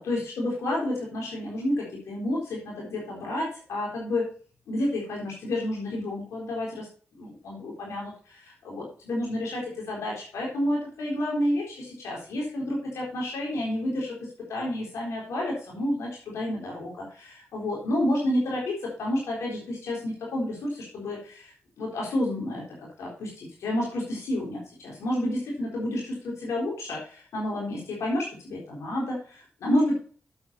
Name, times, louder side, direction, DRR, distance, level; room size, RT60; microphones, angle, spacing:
voice 1, 0.0-4.3 4.7-6.9 7.2-14.2 14.5-22.6 23.0-30.0, left 1 dB, 85° left, -3 dB, 3.8 m, -30 dB
8.2 x 7.5 x 4.1 m, 0.42 s
supercardioid pair, 45°, 5 cm